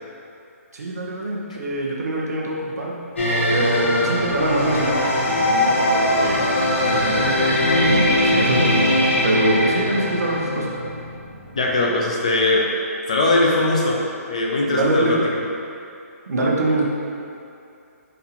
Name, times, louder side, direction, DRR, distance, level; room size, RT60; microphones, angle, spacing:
voice 1, 0.7-3.0 3.5-10.7 14.6-15.2 16.3-16.8, right 1 dB, 85° right, -2 dB, 0.9 m, -24 dB
sound 1, 3.2-10.6, left 1 dB, 50° left, 0.9 m, -20 dB
sound 2, 3.4-11.8, equal, 35° right, 0.8 m, -35 dB
voice 2, 11.6-12.7 13.1-14.0 14.3-15.4, left 2 dB, 25° left, -2 dB, 0.3 m, -20 dB
4.3 x 2.7 x 4.1 m, 2.5 s
hypercardioid pair, 180°, 8 cm